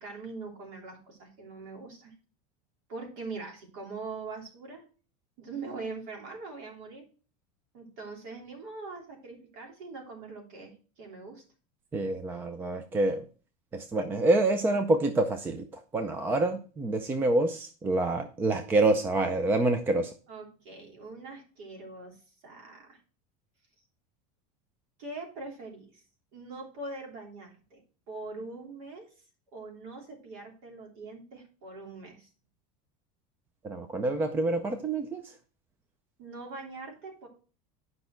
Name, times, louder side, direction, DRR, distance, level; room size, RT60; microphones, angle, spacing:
voice 1, 0.0-2.1 2.9-4.8 5.4-7.0 7.7-11.4 20.3-23.0 25.0-26.0 26.3-27.8 28.1-29.1 29.5-32.3 36.2-37.3, right 3 dB, 50° right, 0 dB, 3.2 m, -42 dB
voice 2, 11.9-13.2 13.7-20.1 33.6-35.4, right 2 dB, 10° right, 8 dB, 0.4 m, -27 dB
10.5 x 5.3 x 4.4 m, 0.37 s
supercardioid pair, 175°, 18 cm